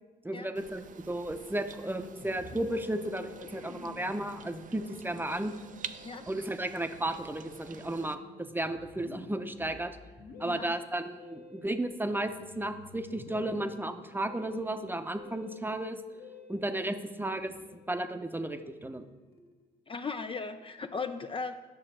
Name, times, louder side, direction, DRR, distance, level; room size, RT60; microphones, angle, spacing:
voice 1, 0.2-5.5 6.3-9.9 10.4-16.0 16.5-19.1, right 1 dB, 10° right, 8 dB, 0.8 m, -34 dB
sound 1, 0.6-8.2, right 7 dB, 45° right, 0.6 m, -48 dB
Musical instrument, 2.2-19.8, left 4 dB, 55° left, 1.5 m, -52 dB
voice 2, 6.0-6.5 10.4-10.7 19.9-21.5, left 4 dB, 30° left, 8 dB, 0.5 m, -37 dB
10.0 x 6.2 x 4.4 m, 1.3 s
supercardioid pair, 65°, 19 cm